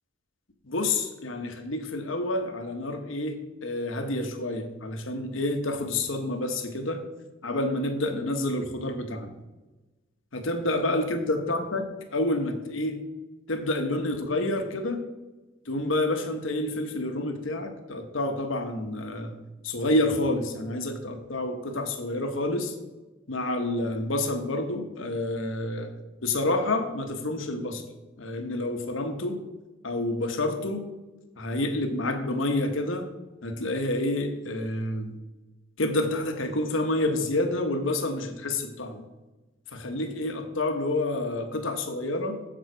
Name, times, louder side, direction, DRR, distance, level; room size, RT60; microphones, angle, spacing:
voice 1, 0.6-7.0 7.4-9.3 10.3-13.0 13.5-15.0 15.7-19.3 19.6-22.7 23.3-25.9 26.2-27.8 28.2-29.4 29.8-30.8 31.4-33.1 33.4-35.1 35.8-39.0 39.7-42.4, left 2 dB, 70° left, 6 dB, 1.1 m, -28 dB
7.7 x 7.3 x 4.5 m, 1.1 s
head